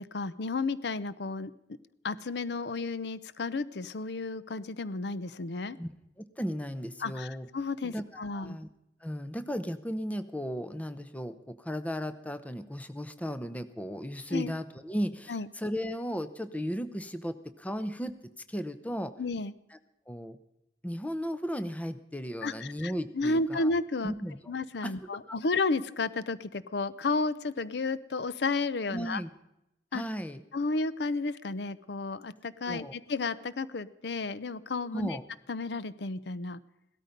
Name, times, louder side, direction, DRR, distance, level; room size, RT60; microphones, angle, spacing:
voice 1, 0.0-1.5 2.0-5.8 7.0-8.6 14.3-14.5 15.3-15.5 19.2-19.5 22.4-24.1 24.5-29.2 29.9-30.0 30.5-35.2 35.5-36.6, left 3 dB, 70° left, 16 dB, 0.6 m, -32 dB
voice 2, 6.2-7.5 7.8-8.7 9.0-19.1 19.7-19.8 20.1-20.4 20.8-23.7 24.0-24.5 24.8-25.3 28.9-29.3 29.9-30.4 32.7-32.9 34.9-35.2, equal, 10° left, 11 dB, 0.7 m, -35 dB
17.0 x 13.0 x 5.2 m, 0.84 s
head